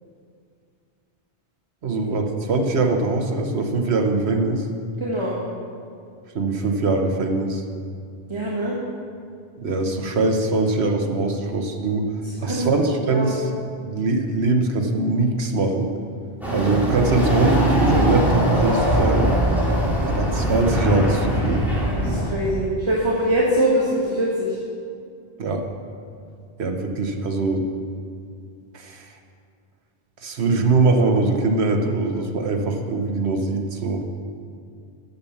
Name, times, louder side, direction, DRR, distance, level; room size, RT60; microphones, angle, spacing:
voice 1, 1.8-4.7 6.3-7.6 9.6-12.1 12.4-13.5 13.8-15.9 16.5-19.3 20.1-21.6 25.4-25.6 26.6-27.7 28.7-29.1 30.2-34.0, right 3 dB, 75° right, 4 dB, 1.3 m, -22 dB
voice 2, 5.0-5.4 8.3-8.8 12.2-12.7 13.1-13.3 16.5-16.9 21.9-24.6, right 1 dB, 25° right, -5 dB, 1.4 m, -23 dB
Chatter / Car passing by / Motorcycle, 16.4-22.3, right 1 dB, ahead, 2.5 m, -21 dB
9.4 x 7.1 x 7.1 m, 2.3 s
omnidirectional pair, 1.1 m